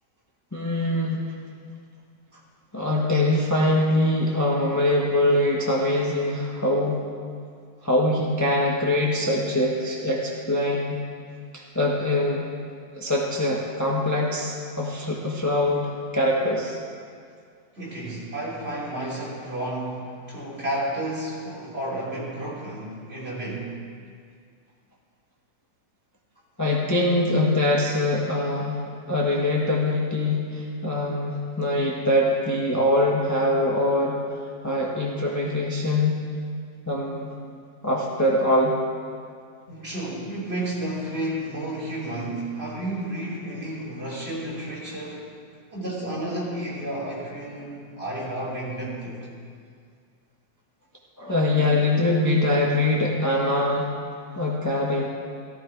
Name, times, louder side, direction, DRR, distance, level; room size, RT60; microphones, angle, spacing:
voice 1, 0.5-1.3 2.7-7.0 7.8-11.0 11.5-12.5 12.9-16.8 26.6-28.8 29.1-34.2 34.6-36.2 36.9-37.3 37.8-38.8 51.2-53.9 54.3-55.1, left 1 dB, 10° left, -3 dB, 1.3 m, -23 dB
voice 2, 17.8-23.8 39.7-45.3 45.7-49.2, right 1 dB, 40° right, -6 dB, 3.7 m, -31 dB
15.5 x 15.0 x 4.7 m, 2.2 s
omnidirectional pair, 1.7 m